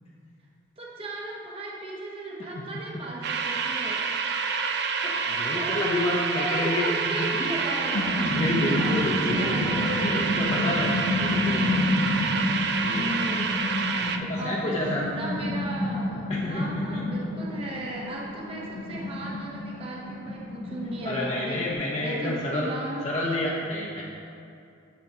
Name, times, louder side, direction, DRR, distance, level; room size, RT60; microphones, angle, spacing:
voice 1, 0.8-4.1 5.5-8.4 8.7-8.9 9.2-10.0 12.2-12.3 12.9-13.6 14.4-21.6 22.0-23.0, right 1 dB, 30° right, -3 dB, 0.9 m, -36 dB
sound 1, 3.2-14.2, right 5 dB, 55° right, 0.4 m, -28 dB
voice 2, 5.0-6.9 7.2-7.5 8.3-11.7 12.8-13.1 14.0-15.1 16.3-17.0 21.0-22.7 23.0-24.0, left 1 dB, 30° left, -4 dB, 0.7 m, -29 dB
sound 2, 7.5-21.7, left 1 dB, 85° left, 1.6 m, -30 dB
10.5 x 7.7 x 2.8 m, 2.6 s
head